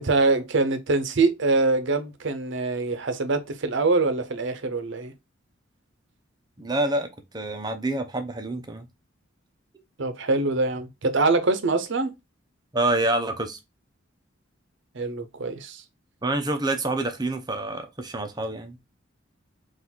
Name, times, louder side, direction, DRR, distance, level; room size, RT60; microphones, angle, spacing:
voice 1, 0.0-5.1 10.0-12.1 14.9-15.8, right 3 dB, 65° right, 0.7 m, -24 dB
voice 2, 6.6-7.1 7.3-8.9 12.7-13.6 16.2-18.8, right 2 dB, 20° right, 0.6 m, -27 dB
3.9 x 2.5 x 4.3 m
head